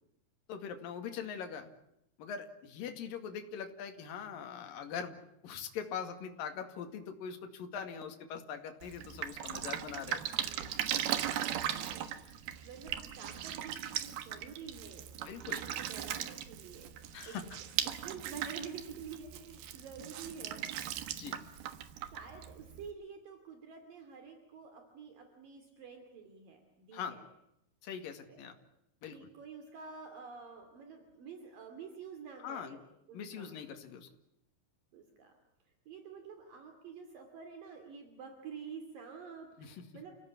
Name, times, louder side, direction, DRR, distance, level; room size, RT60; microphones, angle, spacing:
voice 1, 0.5-1.7 2.2-10.2 15.2-15.6 17.1-17.6 21.1-21.4 26.9-27.2 27.8-28.6 29.0-29.3 32.4-32.8 33.1-34.1 39.6-39.9, left 7 dB, 65° left, 5 dB, 3.8 m, -42 dB
Drip, 8.8-22.9, right 10 dB, 80° right, 3.3 m, -38 dB
voice 2, 10.4-15.1 15.4-16.9 17.3-17.4 17.8-20.7 22.0-27.2 28.3-28.5 29.1-32.8 33.1-33.5 34.9-35.3 35.9-40.2, right 6 dB, 65° right, 5 dB, 4.3 m, -49 dB
29.5 x 16.5 x 10.0 m, 0.82 s
omnidirectional pair, 4.4 m